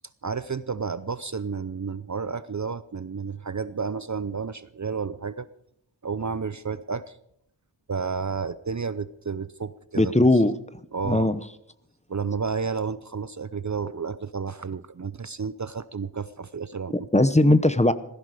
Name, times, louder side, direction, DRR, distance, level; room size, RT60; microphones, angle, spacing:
voice 1, 0.2-5.5 6.0-7.2 7.9-10.1 10.9-11.3 12.1-17.1, right 5 dB, 40° right, 15 dB, 0.6 m, -31 dB
voice 2, 10.0-10.5 11.0-11.4 16.9-17.9, left 2 dB, 15° left, 13 dB, 0.8 m, -19 dB
17.0 x 15.0 x 5.0 m, 0.74 s
wide cardioid pair, 75°, 45 cm